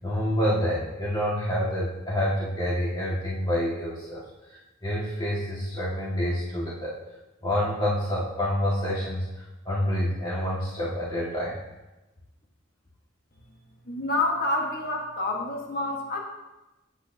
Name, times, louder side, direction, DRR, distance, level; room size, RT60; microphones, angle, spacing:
voice 1, 0.0-4.2 4.5-6.9 7.4-11.6, equal, 25° left, -7 dB, 1.7 m, -28 dB
voice 2, 13.8-16.2, left 2 dB, 50° left, 0 dB, 1.3 m, -28 dB
17.5 x 8.3 x 2.7 m, 1.1 s
head